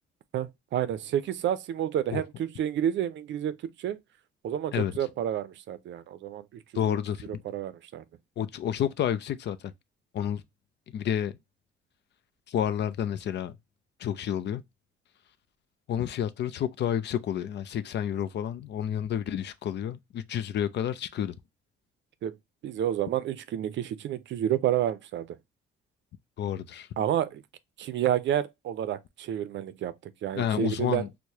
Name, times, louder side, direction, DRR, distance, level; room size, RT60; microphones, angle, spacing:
voice 1, 0.3-4.0 4.4-6.6 6.9-7.0 7.3-8.0 22.2-22.4 22.6-25.4 27.0-27.4 27.8-29.9 30.2-31.1, right 11 dB, 70° right, 0.5 m, -30 dB
voice 2, 6.7-7.4 8.4-9.7 10.1-10.4 10.9-11.4 12.5-13.6 14.0-14.6 15.9-21.4 26.4-26.9 30.4-31.1, left 9 dB, 60° left, 0.5 m, -30 dB
4.6 x 2.1 x 2.7 m
cardioid pair, 90°, 20 cm